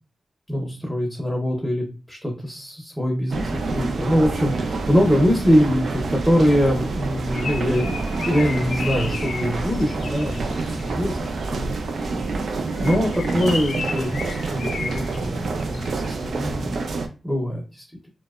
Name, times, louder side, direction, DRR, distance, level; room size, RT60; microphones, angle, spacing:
voice 1, 0.5-16.7 17.2-17.9, equal, ahead, 0 dB, 0.6 m, -23 dB
sound 1, 3.3-17.1, right 3 dB, 75° right, 0.4 m, -27 dB
Bird, 6.9-11.0 12.6-16.2, left 4 dB, 80° left, 0.5 m, -35 dB
2.7 x 2.1 x 2.3 m, 0.34 s
wide cardioid pair, 95°, 0 cm